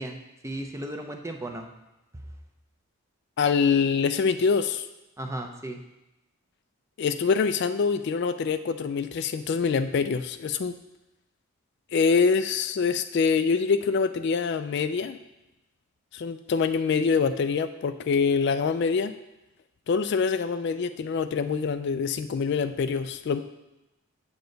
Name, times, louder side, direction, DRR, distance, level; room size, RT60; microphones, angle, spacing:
voice 1, 0.0-1.7 5.2-5.8, right 1 dB, 15° right, 4 dB, 0.6 m, -35 dB
voice 2, 3.4-4.9 7.0-10.7 11.9-15.2 16.1-19.1 19.9-23.4, left 5 dB, 50° left, 10 dB, 0.3 m, -25 dB
7.8 x 6.9 x 3.9 m, 0.97 s
head